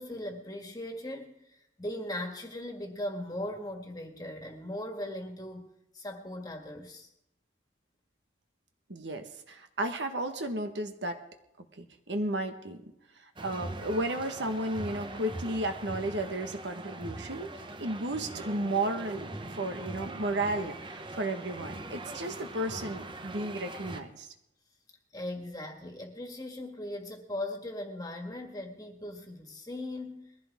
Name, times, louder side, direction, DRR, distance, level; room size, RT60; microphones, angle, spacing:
voice 1, 0.0-7.1 25.1-30.3, left 1 dB, 20° left, 3 dB, 1.8 m, -39 dB
voice 2, 8.9-11.2 11.8-12.8 13.2-24.3, right 1 dB, 70° right, 6 dB, 1.3 m, -33 dB
sound 1, 13.4-24.0, right 2 dB, 25° right, 0.9 m, -42 dB
21.5 x 15.5 x 3.6 m, 0.81 s
head